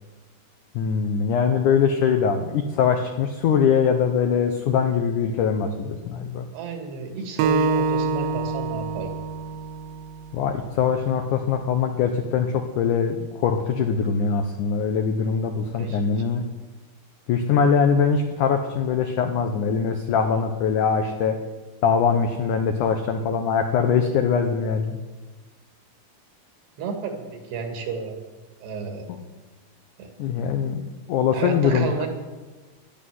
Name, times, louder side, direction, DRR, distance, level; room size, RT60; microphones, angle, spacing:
voice 1, 0.7-6.5 10.3-16.4 17.3-21.4 21.8-25.0 29.1-29.2 30.2-32.1, left 6 dB, 85° left, 6 dB, 1.7 m, -22 dB
voice 2, 6.5-9.1 15.7-16.0 26.8-28.2 28.6-29.1 30.0-30.1 31.3-32.1, right 5 dB, 70° right, 4 dB, 4.0 m, -31 dB
Acoustic guitar, 7.4-10.7, right 4 dB, 90° right, 3.0 m, -26 dB
12.5 x 11.5 x 9.4 m, 1.3 s
omnidirectional pair, 4.9 m